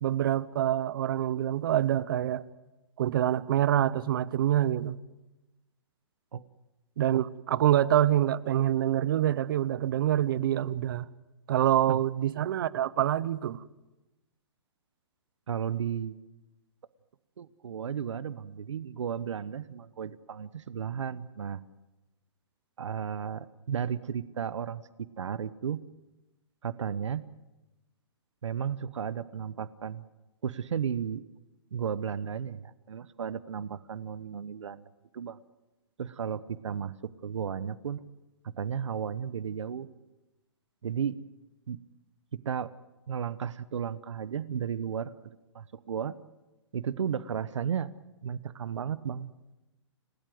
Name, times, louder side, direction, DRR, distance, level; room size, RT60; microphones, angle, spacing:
voice 1, 0.0-2.4 3.0-5.0 7.0-11.0 11.5-13.6, right 11 dB, 45° right, 0.9 m, -26 dB
voice 2, 11.5-12.0 15.5-16.2 17.4-21.6 22.8-25.8 26.6-27.2 28.4-30.0 30.4-31.2 31.7-34.8 35.1-35.4 36.0-38.0 38.4-39.9 40.8-41.2 41.7-41.8 42.4-42.7 43.1-46.1 46.7-47.9 48.2-49.3, right 8 dB, 75° right, 1.1 m, -34 dB
29.0 x 18.0 x 7.8 m
hypercardioid pair, 155°, 15 cm